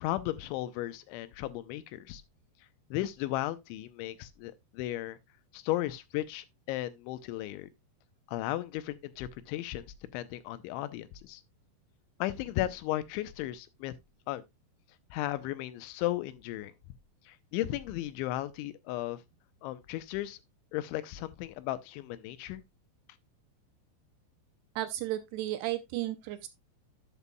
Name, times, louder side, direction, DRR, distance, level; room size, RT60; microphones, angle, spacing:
voice 1, 0.0-2.2 2.9-5.2 5.5-7.7 8.3-9.9 10.1-11.4 12.2-13.9 14.3-14.4 15.1-16.7 17.3-19.2 19.6-20.4 20.7-22.6, left 15 dB, 90° left, 3.1 m, -35 dB
voice 2, 24.8-26.5, right 15 dB, 80° right, 2.5 m, -34 dB
12.0 x 7.3 x 2.3 m
omnidirectional pair, 5.2 m